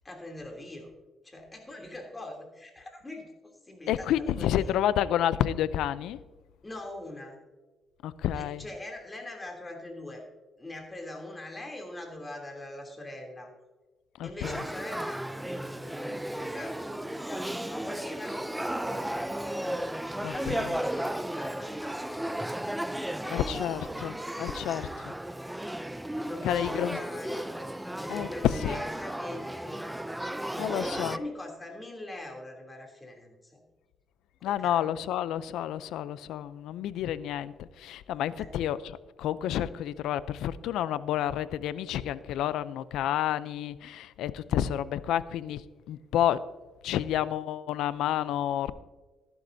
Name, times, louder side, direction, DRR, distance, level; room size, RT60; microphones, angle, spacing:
voice 1, 0.0-0.9 1.2-3.3 3.6-4.7 6.6-7.4 8.3-10.2 10.6-13.5 14.2-22.8 23.2-23.6 26.2-27.5 28.0-29.9 30.4-33.6 34.4-34.9 38.4-38.5, left 1 dB, 20° left, 1 dB, 3.0 m, -42 dB
voice 2, 3.9-6.2 8.0-8.6 14.2-14.6 20.2-20.7 23.3-25.1 26.4-27.0 28.1-28.8 30.6-31.2 34.4-38.8 39.2-45.6 45.9-46.4 46.8-48.7, left 11 dB, 85° left, 16 dB, 0.5 m, -30 dB
Male speech man speaking / Child speech kid speaking / Conversation, 14.4-31.2, right 1 dB, 5° right, 0.4 m, -34 dB
14.0 x 12.0 x 2.7 m, 1.3 s
cardioid pair, 90°, 0 cm